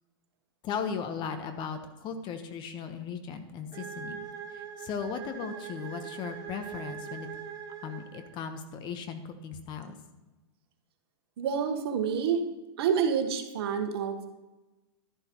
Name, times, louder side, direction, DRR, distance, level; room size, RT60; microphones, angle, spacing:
voice 1, 0.6-4.2 4.5-7.3 7.8-10.0, left 6 dB, 35° left, 8 dB, 1.1 m, -37 dB
sound 1, 3.7-8.6, right 7 dB, 25° right, 1.5 m, -42 dB
voice 2, 11.4-12.4 12.8-14.3, right 7 dB, 65° right, 6 dB, 1.3 m, -28 dB
11.5 x 10.5 x 3.0 m, 1.1 s
hypercardioid pair, 125°, 14 cm